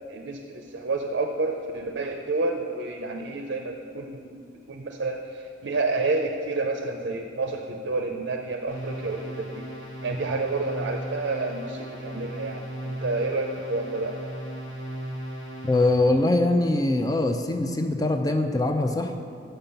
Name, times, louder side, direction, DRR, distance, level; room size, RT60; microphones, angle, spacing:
voice 1, 0.1-4.4 4.7-9.7 10.0-14.2, right 3 dB, 60° right, 4 dB, 0.5 m, -29 dB
sound 1, 8.7-16.2, right 1 dB, 70° left, 1.9 m, -37 dB
voice 2, 15.6-19.1, left 2 dB, 20° left, 5 dB, 0.4 m, -22 dB
6.7 x 5.6 x 6.8 m, 2.4 s
head